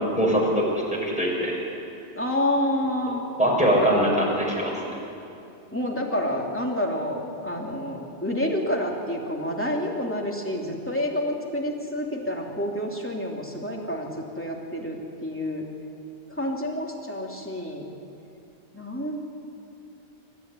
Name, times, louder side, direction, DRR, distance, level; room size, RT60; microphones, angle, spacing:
voice 1, 0.2-1.6 3.4-4.8, equal, 5° right, -4 dB, 6.2 m, -22 dB
voice 2, 2.1-3.3 5.7-14.1 14.4-15.6 16.4-17.8 18.7-19.2, left 1 dB, 10° left, -1 dB, 3.1 m, -28 dB
26.0 x 14.5 x 9.8 m, 2.8 s
omnidirectional pair, 1.2 m